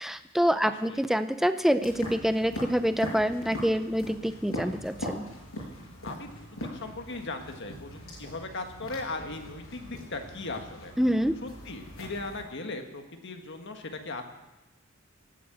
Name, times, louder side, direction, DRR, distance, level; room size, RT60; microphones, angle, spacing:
voice 1, 0.0-5.3 11.0-11.4, equal, ahead, 10 dB, 0.6 m, -26 dB
sound 1, 1.8-12.4, equal, 90° left, 5.9 m, -41 dB
voice 2, 6.0-10.9 11.4-14.2, left 3 dB, 55° left, 5 dB, 1.7 m, -38 dB
17.5 x 8.6 x 8.0 m, 1.0 s
head